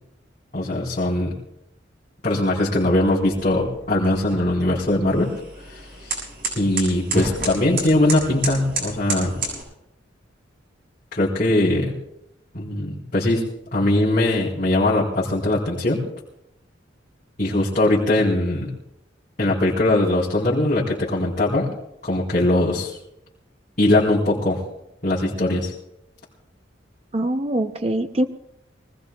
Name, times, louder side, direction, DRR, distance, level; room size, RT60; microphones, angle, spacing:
voice 1, 0.5-1.3 2.2-5.3 5.7-6.1 6.5-9.3 11.1-11.9 12.5-13.4 13.7-16.0 17.4-18.7 19.4-21.7 22.0-23.0 23.8-24.6 25.0-25.7, left 1 dB, 40° left, -8 dB, 4.1 m, -21 dB
sound 1, 2.8-9.6, right 3 dB, 50° right, 7.9 m, -31 dB
voice 2, 27.1-28.3, right 1 dB, 30° right, 8 dB, 0.6 m, -23 dB
25.0 x 19.5 x 2.3 m, 0.85 s
head